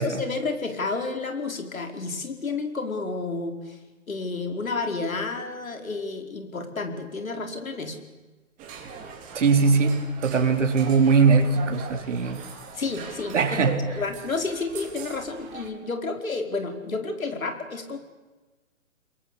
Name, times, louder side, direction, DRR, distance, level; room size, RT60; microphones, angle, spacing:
voice 1, 0.0-3.8 4.1-8.0 12.7-13.4 13.7-18.0, left 3 dB, 75° left, 5 dB, 4.9 m, -30 dB
sound 1, 8.6-15.7, right 5 dB, 20° right, 4.0 m, -42 dB
voice 2, 9.3-12.4 13.3-13.8, right 5 dB, 60° right, 5 dB, 4.0 m, -21 dB
29.0 x 22.5 x 8.4 m, 1.2 s
figure-of-eight pair, 140°, 42 cm